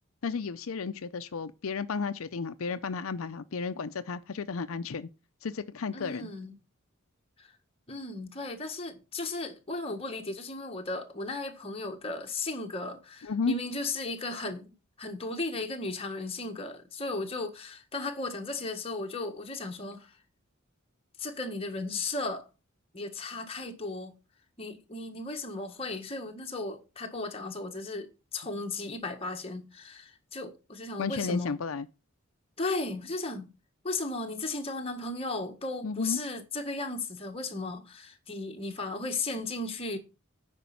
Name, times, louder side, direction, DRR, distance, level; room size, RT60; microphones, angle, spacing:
voice 1, 0.2-5.1 5.4-6.3 13.2-13.5 31.0-31.8 35.8-36.2, left 5 dB, 85° left, 0.6 m, -33 dB
voice 2, 5.9-6.6 7.4-7.5 7.9-14.7 15.0-20.1 21.2-22.5 22.9-24.1 24.6-31.5 32.6-33.5 33.8-40.0, left 2 dB, 30° left, 1.5 m, -35 dB
9.3 x 5.3 x 5.7 m
head